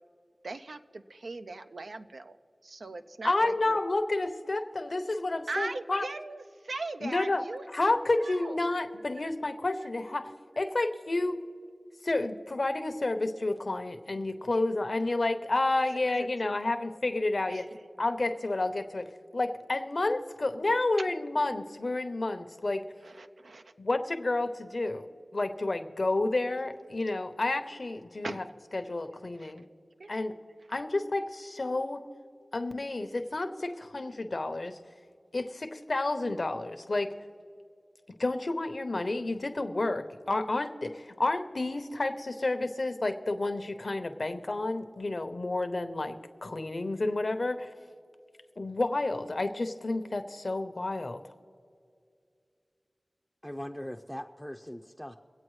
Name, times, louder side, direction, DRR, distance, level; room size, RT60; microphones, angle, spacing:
voice 1, 0.4-2.4 2.6-3.8 5.5-7.6 8.1-8.6 14.5-14.6 16.2-16.3 17.5-17.6 23.0-23.7 28.2-28.4 29.4-29.5 30.0-30.1, right 3 dB, 85° right, 8 dB, 0.5 m, -39 dB
voice 2, 3.2-6.1 7.0-11.4 12.0-17.7 18.0-19.1 19.3-22.8 23.8-25.1 25.3-28.4 28.7-29.6 30.1-30.3 30.7-32.0 32.5-34.8 35.3-37.1 38.2-46.1 46.4-47.7 48.6-51.2, left 2 dB, 60° left, 8 dB, 0.8 m, -30 dB
voice 3, 53.4-55.1, equal, ahead, 3 dB, 0.5 m, -40 dB
24.0 x 8.4 x 3.2 m, 2.3 s
wide cardioid pair, 50°, 0 cm